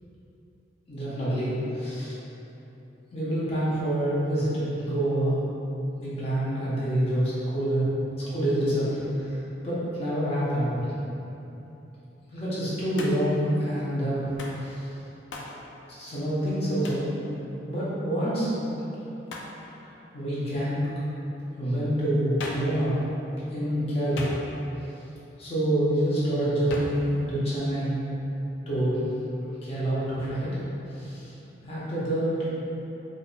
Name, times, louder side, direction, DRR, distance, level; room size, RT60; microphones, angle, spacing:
voice 1, 0.9-1.6 1.8-2.1 3.1-5.5 6.0-7.8 8.3-10.9 12.3-14.3 14.6-14.9 15.9-18.6 19.8-20.8 21.6-22.9 23.5-24.3 25.4-28.0 28.7-29.1 29.6-30.6 30.9-31.3 31.6-32.5, right 1 dB, 35° left, -10 dB, 1.0 m, -27 dB
Hands, 13.0-13.4 14.4-14.6 15.3-15.6 16.8-17.1 19.3-19.6 22.4-22.8 24.2-24.7 26.7-27.1, left 2 dB, 80° left, 0.4 m, -37 dB
4.7 x 2.5 x 2.3 m, 3.0 s
head